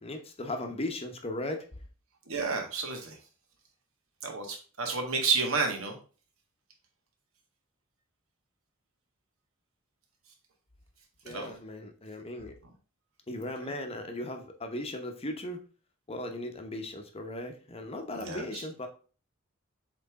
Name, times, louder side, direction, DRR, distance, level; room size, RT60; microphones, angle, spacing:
voice 1, 0.0-1.7 11.2-12.6 13.3-15.6 16.1-18.9, left 1 dB, 30° left, 5 dB, 0.9 m, -37 dB
voice 2, 2.2-3.2 4.2-6.0 11.3-11.5 13.6-13.7 18.1-18.7, right 4 dB, 80° right, 2 dB, 1.6 m, -31 dB
7.9 x 3.3 x 3.6 m, 0.38 s
head